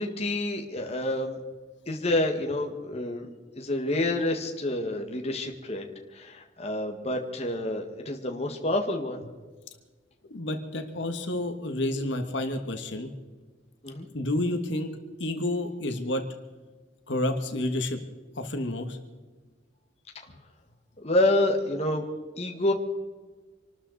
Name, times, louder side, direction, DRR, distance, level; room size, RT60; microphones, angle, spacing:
voice 1, 0.0-1.4 1.9-3.3 3.5-5.8 6.1-9.2 13.8-14.1 21.0-22.0 22.4-22.7, left 1 dB, 35° left, 3 dB, 1.7 m, -28 dB
voice 2, 10.3-13.1 14.1-14.9 15.2-16.2 17.1-18.0 18.4-19.0, left 1 dB, 70° left, 6 dB, 1.6 m, -29 dB
26.5 x 13.0 x 4.1 m, 1.3 s
head